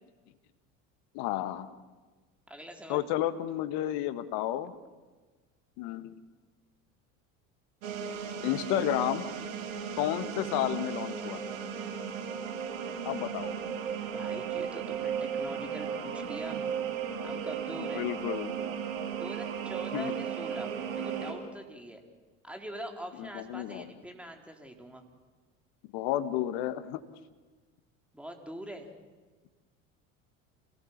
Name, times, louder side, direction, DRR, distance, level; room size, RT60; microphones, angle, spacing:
voice 1, 1.1-1.7 2.9-4.7 5.8-6.2 8.4-9.2 10.0-11.4 13.0-13.6 17.8-18.5 19.9-20.1 23.2-23.9 25.9-27.0, left 13 dB, 60° left, 11 dB, 1.8 m, -31 dB
voice 2, 2.5-3.1 14.1-16.6 17.2-18.1 19.2-22.0 22.4-25.0 28.1-28.9, equal, 5° right, 3 dB, 4.3 m, -43 dB
sound 1, 7.8-21.3, right 7 dB, 70° right, 4.2 m, -35 dB
28.5 x 18.0 x 7.5 m, 1.3 s
hypercardioid pair, 70°, 42 cm